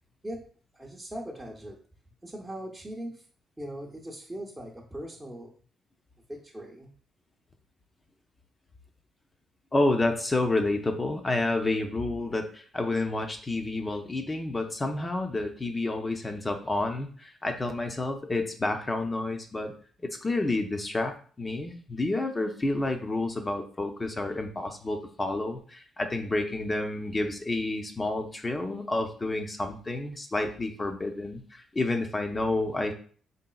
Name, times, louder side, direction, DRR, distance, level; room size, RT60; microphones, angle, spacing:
voice 1, 0.7-1.8 2.2-3.3 3.6-5.5 6.3-6.9, right 1 dB, 15° right, -1 dB, 0.7 m, -40 dB
voice 2, 9.7-19.7 20.1-32.9, left 2 dB, 25° left, 5 dB, 0.6 m, -29 dB
4.0 x 3.5 x 2.3 m, 0.44 s
cardioid pair, 90°, 0 cm